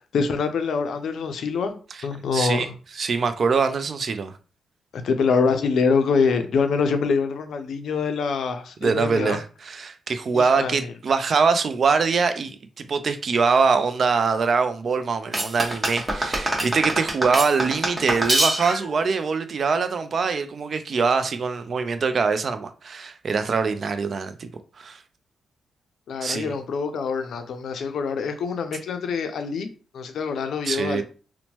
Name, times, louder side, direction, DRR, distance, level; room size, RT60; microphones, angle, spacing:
voice 1, 0.1-1.8 2.0-2.7 5.0-9.4 10.3-10.7 26.1-29.7 29.9-31.0, left 5 dB, 75° left, 0.4 m, -25 dB
voice 2, 2.3-2.7 2.9-4.3 8.8-24.5 24.8-25.0 26.2-26.5 30.7-31.0, right 5 dB, 60° right, 0.3 m, -23 dB
sound 1, 15.3-19.0, right 1 dB, 25° right, 0.9 m, -24 dB
2.8 x 2.1 x 2.9 m
cardioid pair, 60°, 0 cm